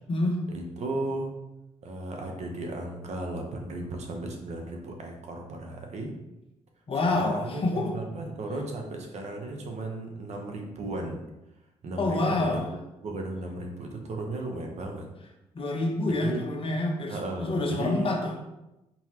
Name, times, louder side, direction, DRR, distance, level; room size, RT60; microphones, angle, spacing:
voice 1, 0.5-1.3 1.8-6.1 7.2-11.2 11.8-12.6 13.0-15.1 16.2-16.4 17.1-18.2, right 2 dB, 60° right, 2 dB, 0.9 m, -35 dB
voice 2, 6.9-7.9 12.0-12.6 15.5-18.3, left 2 dB, 45° left, 1 dB, 1.0 m, -27 dB
4.3 x 3.9 x 2.9 m, 0.94 s
cardioid pair, 75°, 13 cm